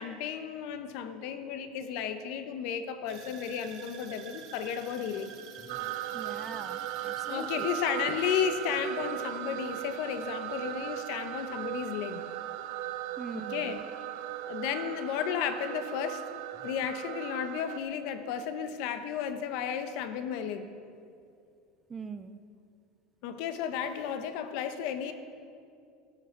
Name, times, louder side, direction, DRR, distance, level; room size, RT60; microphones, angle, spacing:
voice 1, 0.0-5.3 7.3-12.2 13.3-13.8 14.5-16.2 16.6-20.7 23.2-25.1, left 8 dB, 60° left, 9 dB, 1.0 m, -33 dB
sound 1, 3.1-11.3 11.6-12.0 12.5-12.6, right 6 dB, 55° right, 1.6 m, -50 dB
voice 2, 5.6-7.7 13.2-13.8 16.6-16.7 21.9-22.4, right 5 dB, 20° right, 11 dB, 0.5 m, -43 dB
sound 2, 5.7-17.8, right 13 dB, 70° right, 0.7 m, -37 dB
13.5 x 12.0 x 4.5 m, 2.4 s
supercardioid pair, 145°, 0 cm